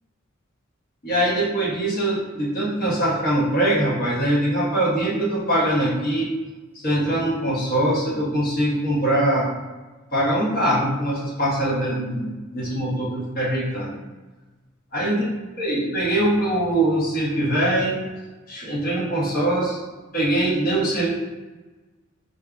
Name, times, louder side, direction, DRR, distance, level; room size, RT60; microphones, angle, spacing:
voice 1, 1.0-6.3 6.8-9.5 10.1-13.9 14.9-15.2 15.6-18.0 18.5-19.8 20.1-21.1, right 1 dB, 50° left, -5 dB, 1.0 m, -22 dB
4.5 x 2.6 x 2.4 m, 1.2 s
head